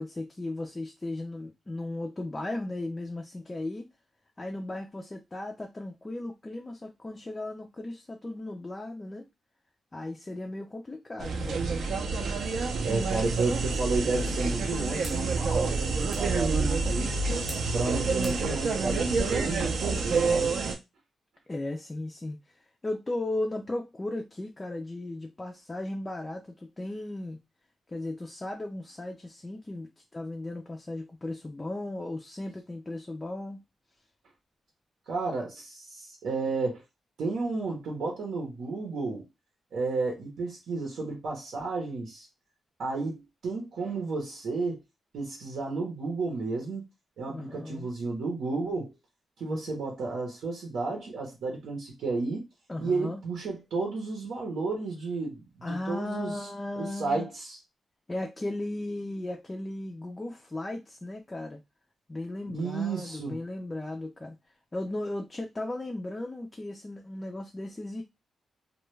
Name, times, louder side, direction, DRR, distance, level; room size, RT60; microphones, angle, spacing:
voice 1, 0.0-3.9 4.4-9.3 9.9-11.8 21.5-27.4 27.9-33.6 47.3-47.9 49.4-49.6 52.7-53.2 55.6-57.3 58.1-61.6 62.1-64.4 64.7-68.0, left 2 dB, 15° left, 0.3 m, -36 dB
sound 1, 11.2-20.8, right 4 dB, 65° right, 0.5 m, -28 dB
voice 2, 12.8-17.1 17.7-20.5 35.1-36.8 37.2-39.3 39.7-42.3 42.8-44.8 45.1-46.8 47.2-48.9 49.4-52.4 52.8-56.4 56.8-57.6 62.5-63.4, right 3 dB, 85° right, 0.8 m, -32 dB
sound 2, 13.7-19.2, right 1 dB, 20° right, 0.8 m, -45 dB
2.2 x 2.1 x 3.1 m
wide cardioid pair, 165°, 0 cm